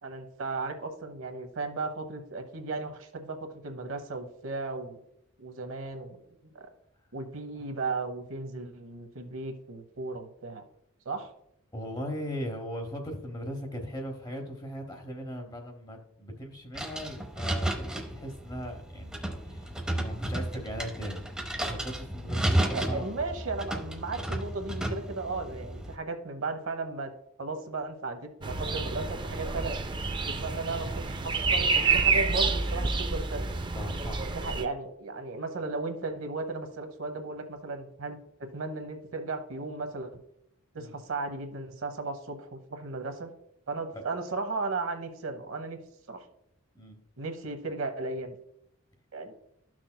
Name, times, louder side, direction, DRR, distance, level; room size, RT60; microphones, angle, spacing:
voice 1, 0.0-5.0 5.4-6.7 7.1-10.6 11.0-11.3 22.6-27.1 27.4-29.7 30.3-33.4 34.2-40.2 40.7-43.3 43.7-45.8 46.1-46.2 47.2-48.4 49.1-49.3, right 3 dB, 65° right, 6 dB, 0.9 m, -35 dB
voice 2, 11.7-21.2 21.6-23.1 33.7-34.3 40.8-41.0 43.9-44.0 46.7-47.0, equal, 20° left, 3 dB, 1.0 m, -39 dB
sound 1, 16.7-26.0, right 1 dB, 5° right, 0.7 m, -33 dB
sound 2, 28.4-34.6, right 4 dB, 20° right, 0.3 m, -28 dB
13.0 x 6.1 x 2.2 m, 0.76 s
head